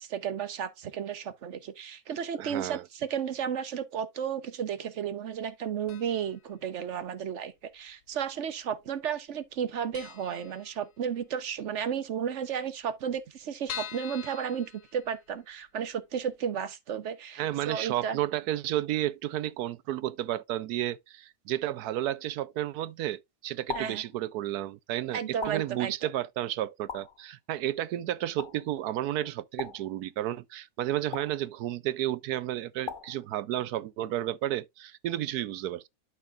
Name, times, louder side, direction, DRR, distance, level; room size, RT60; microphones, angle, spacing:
voice 1, 0.0-18.2 23.7-24.0 25.1-25.9, right 8 dB, 55° right, 1.1 m, -33 dB
voice 2, 2.3-2.8 17.4-35.9, right 13 dB, 75° right, 1.1 m, -32 dB
sound 1, 5.9-6.4 6.7-6.8 7.7-8.4 8.7-8.8 9.1-9.2 9.6-9.7 9.9-11.3 11.6-11.7 12.0-12.1 12.3-12.4 12.9-15.5 16.0-16.1 16.4-16.5, left 10 dB, 75° left, 1.3 m, -44 dB
sound 2, 23.7-24.1 25.4-25.8 26.9-27.2 28.4-28.7 29.6-30.0 31.1-31.5 32.9-33.3, left 6 dB, 50° left, 0.7 m, -39 dB
12.0 x 4.6 x 2.4 m
omnidirectional pair, 1.7 m